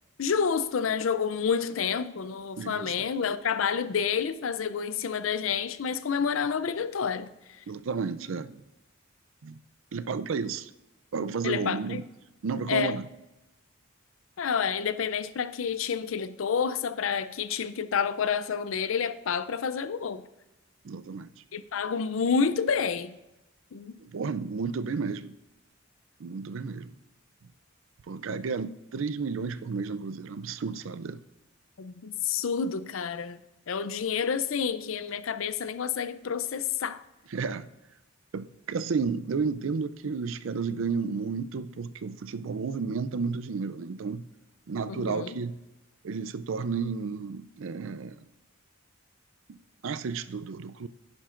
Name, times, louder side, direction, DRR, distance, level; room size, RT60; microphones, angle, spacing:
voice 1, 0.2-7.3 11.4-12.0 12.7-13.0 14.4-20.2 21.5-23.2 23.7-23.9 31.8-33.4 33.7-37.0 44.9-45.4, left 6 dB, 80° left, 0.5 m, -29 dB
voice 2, 2.6-3.1 7.7-8.6 9.4-9.6 9.9-10.7 11.1-12.0 12.4-13.1 20.8-21.3 24.0-25.4 26.2-26.9 28.1-31.2 37.3-37.7 38.3-44.3 44.7-45.6 46.0-48.2 49.5-50.9, right 5 dB, 75° right, 0.4 m, -32 dB
10.5 x 10.0 x 2.5 m
head